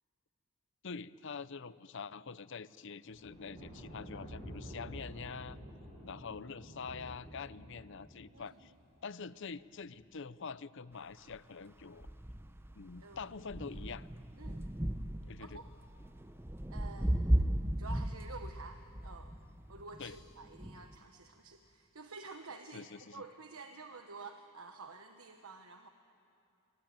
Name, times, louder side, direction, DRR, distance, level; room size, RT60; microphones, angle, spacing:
voice 1, 0.8-5.6 6.0-8.7 9.0-12.1 12.7-14.1 15.2-15.6 20.0-20.2 22.7-23.2, left 5 dB, 60° left, 16 dB, 0.7 m, -45 dB
sound 1, 3.1-8.6 9.7-10.1, equal, 30° right, 7.6 m, -49 dB
sound 2, 11.3-11.4 11.8-21.0, right 1 dB, 10° right, 0.7 m, -36 dB
voice 2, 13.0-13.8 14.4-14.7 15.4-15.7 16.7-17.2 17.8-19.4 19.7-25.9, right 4 dB, 80° right, 6 dB, 1.2 m, -50 dB
24.5 x 24.5 x 9.3 m, 2.7 s
head